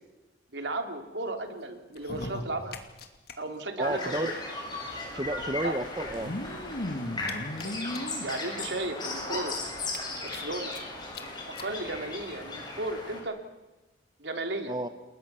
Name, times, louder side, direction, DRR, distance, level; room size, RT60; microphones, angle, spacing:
voice 1, 0.5-2.8 3.4-4.3 5.6-5.7 8.2-9.5 10.2-10.7 11.6-13.4 14.2-14.7, right 2 dB, 70° right, 6 dB, 3.3 m, -34 dB
sound 1, 1.9-3.3 3.6-3.7 3.9-4.0 5.0-5.1 6.0-8.3 8.9-9.0 9.3-9.4 9.8-10.8 11.1-11.2 11.6-11.7 12.5-12.6, left 1 dB, 55° left, 2.6 m, -37 dB
sound 2, 3.8-13.2, left 2 dB, 25° left, 7.3 m, -37 dB
voice 2, 3.8-4.4 5.1-6.3 14.7-14.9, right 1 dB, 20° right, 9 dB, 1.1 m, -31 dB
29.5 x 21.5 x 7.1 m, 1.1 s
head